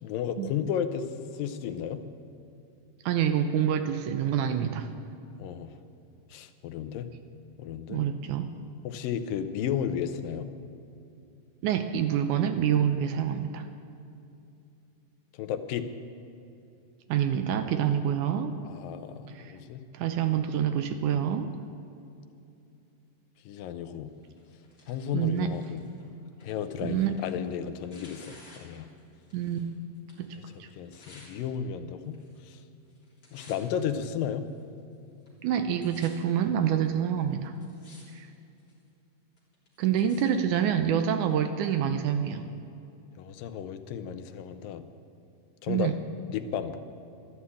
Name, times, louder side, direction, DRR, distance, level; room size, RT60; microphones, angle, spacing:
voice 1, 0.0-1.1 1.3-2.0 5.4-5.7 6.3-7.1 7.6-8.0 8.8-10.5 15.3-15.9 18.6-19.8 23.5-24.1 24.9-25.8 26.4-28.9 30.5-32.2 32.4-32.6 33.3-34.5 43.2-44.8 45.6-45.9 46.3-46.8, left 8 dB, 85° left, 9 dB, 2.5 m, -33 dB
voice 2, 3.1-4.9 7.9-8.5 11.6-13.7 17.1-18.5 19.3-19.5 19.9-21.5 25.1-25.5 26.8-27.2 29.3-29.7 30.2-30.7 35.4-37.5 38.1-38.3 39.8-42.5 45.7-46.0, right 9 dB, 75° right, 8 dB, 2.0 m, -27 dB
Tearing, 24.2-29.7 29.9-31.3 32.0-32.6 32.8-33.8 34.4-34.5 35.3-35.4 35.5-36.1 36.9-37.0 37.4-38.0 38.3-38.8 39.4-40.2 41.0-41.1, left 2 dB, 30° left, 3.6 m, -55 dB
13.0 x 12.0 x 8.4 m, 2.7 s
omnidirectional pair, 3.9 m